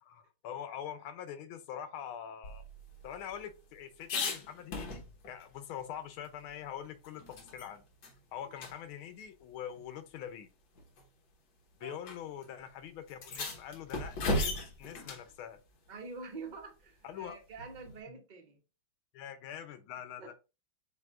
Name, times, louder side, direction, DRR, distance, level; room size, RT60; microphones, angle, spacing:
voice 1, 0.0-2.7 3.0-7.8 8.3-10.5 11.8-15.6 17.0-17.4 18.1-18.2 19.1-20.3, left 9 dB, 90° left, 1.5 m, -44 dB
sound 1, 2.4-5.4 5.8-5.9 6.2-7.7 8.0-8.2 8.6-8.7 9.8-9.9 10.8-11.0 12.0-12.2 12.4-12.5 13.1-15.3 17.6-18.0, left 2 dB, 70° left, 1.9 m, -37 dB
voice 2, 15.9-18.6 19.9-20.3, right 4 dB, 40° right, 0.7 m, -47 dB
7.8 x 2.7 x 2.4 m
omnidirectional pair, 2.2 m